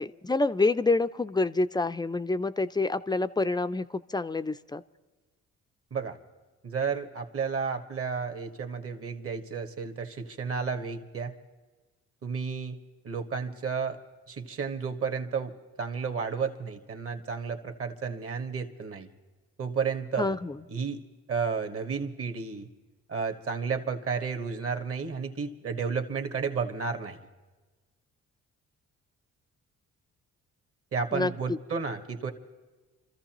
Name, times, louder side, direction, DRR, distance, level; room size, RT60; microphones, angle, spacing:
voice 1, 0.0-4.8 20.2-20.6 31.1-31.6, left 3 dB, 15° left, 12 dB, 0.4 m, -27 dB
voice 2, 6.6-11.3 12.2-12.8 13.0-14.0 14.3-15.5 15.8-19.1 19.6-20.4 20.7-21.0 21.3-22.7 23.1-27.2 30.9-32.3, right 5 dB, 50° right, 7 dB, 1.6 m, -32 dB
27.5 x 14.0 x 3.0 m, 1.3 s
cardioid pair, 90°, 30 cm